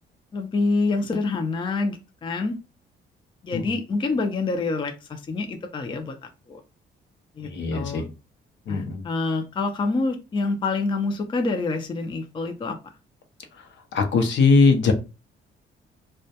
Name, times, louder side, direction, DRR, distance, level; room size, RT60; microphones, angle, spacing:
voice 1, 0.3-2.6 3.4-6.2 6.5-6.6 7.4-8.1 8.7-12.8, left 3 dB, 25° left, 6 dB, 0.4 m, -27 dB
voice 2, 7.4-8.1 8.7-9.0 13.9-14.9, left 4 dB, 65° left, 5 dB, 0.6 m, -20 dB
2.1 x 2.1 x 2.7 m, 0.29 s
cardioid pair, 90°, 20 cm